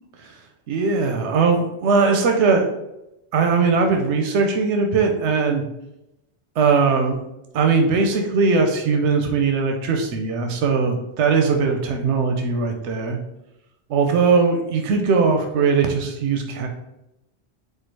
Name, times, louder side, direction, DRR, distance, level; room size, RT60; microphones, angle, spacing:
voice 1, 0.7-2.7 3.3-5.6 6.6-7.2 7.5-13.2 13.9-16.7, right 4 dB, 90° right, 3 dB, 0.9 m, -20 dB
4.5 x 2.4 x 4.5 m, 0.89 s
omnidirectional pair, 1.1 m